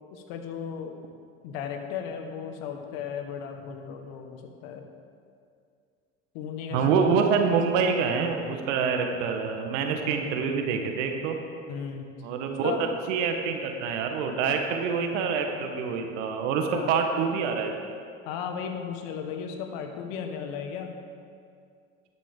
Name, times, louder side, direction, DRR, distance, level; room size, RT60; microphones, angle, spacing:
voice 1, 0.1-0.9 1.4-4.8 6.3-6.9 11.7-12.1 12.6-12.9 16.7-16.9 18.2-20.9, left 7 dB, 70° left, 5 dB, 1.5 m, -35 dB
voice 2, 6.7-11.4 12.2-12.7 13.1-17.9, right 5 dB, 75° right, 4 dB, 1.3 m, -26 dB
12.5 x 11.0 x 3.7 m, 2.3 s
hypercardioid pair, 80°, 36 cm